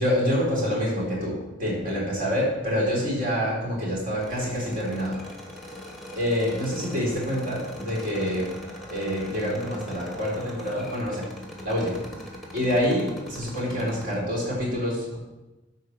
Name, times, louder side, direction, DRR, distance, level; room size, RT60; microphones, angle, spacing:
voice 1, 0.0-5.2 6.2-8.5 8.9-11.3 11.6-12.0 12.5-15.2, equal, 45° right, -4 dB, 3.7 m, -26 dB
sound 1, 4.2-14.2, left 1 dB, ahead, 1.5 m, -41 dB
11.5 x 4.2 x 6.4 m, 1.1 s
head